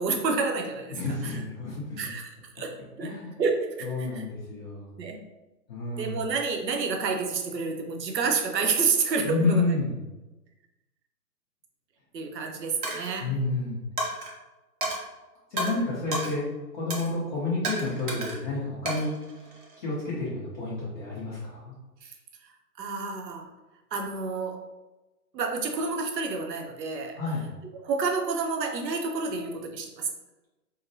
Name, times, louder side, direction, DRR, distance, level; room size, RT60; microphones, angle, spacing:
voice 1, 0.0-1.4 2.0-3.1 3.4-4.2 5.0-5.2 6.0-9.6 12.1-13.3 22.0-22.1 22.8-23.5 23.9-24.6 25.3-27.2 27.8-30.1, right 4 dB, 80° right, 2 dB, 0.8 m, -29 dB
voice 2, 0.9-2.1 3.0-3.4 3.8-4.9 5.7-6.2 9.2-10.0 13.2-13.8 15.5-16.5 16.7-19.1 19.8-21.7 27.2-27.5, left 3 dB, 30° left, -8 dB, 0.8 m, -30 dB
Coin (dropping), 12.8-13.1 14.0-14.3 14.8-15.0 15.6-15.7 16.1-16.3 16.9-17.1 17.6-18.4 18.9-19.8, right 1 dB, 30° right, 0.6 m, -32 dB
4.8 x 2.1 x 2.6 m, 1.1 s
hypercardioid pair, 145°, 49 cm